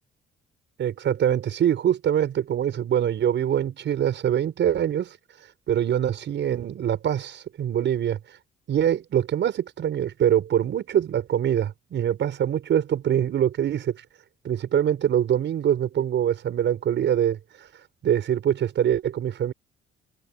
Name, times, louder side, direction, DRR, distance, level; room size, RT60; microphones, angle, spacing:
voice 1, 0.8-5.2 5.7-8.2 8.7-14.0 14.4-17.4 18.0-19.5, right 10 dB, 65° right, 5.8 m, -24 dB
cardioid pair, 90°, 20 cm